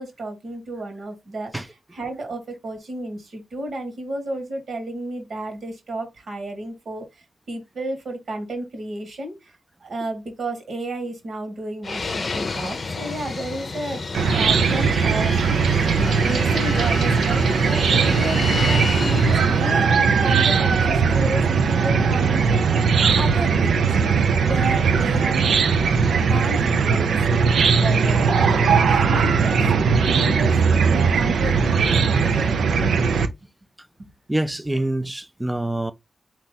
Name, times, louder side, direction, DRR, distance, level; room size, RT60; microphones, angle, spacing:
voice 1, 0.0-9.5 9.8-14.0 14.3-15.3 16.2-19.9 20.2-22.5 23.2-25.5 26.3-27.2 27.8-29.7 30.0-32.6 34.0-34.1, right 1 dB, 65° right, 1.7 m, -32 dB
Fixed-wing aircraft airplane, 11.8-19.7, left 4 dB, 45° left, 0.6 m, -31 dB
Chicken rooster / Cricket, 14.1-33.3, right 5 dB, 90° right, 0.6 m, -19 dB
voice 2, 34.3-35.9, right 1 dB, 15° right, 0.5 m, -25 dB
4.1 x 2.9 x 3.8 m
cardioid pair, 80°, 0 cm